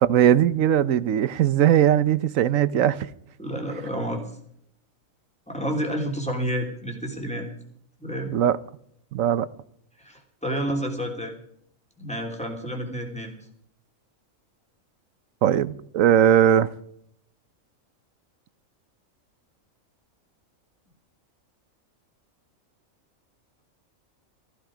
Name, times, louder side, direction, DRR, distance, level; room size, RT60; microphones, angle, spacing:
voice 1, 0.0-3.0 8.3-8.6 9.1-9.5 15.4-16.7, right 10 dB, 75° right, 1.1 m, -19 dB
voice 2, 3.4-4.3 5.5-7.5 8.0-8.3 10.0-11.3 12.0-13.3, equal, 5° left, 3.2 m, -30 dB
15.0 x 15.0 x 5.0 m
omnidirectional pair, 1.4 m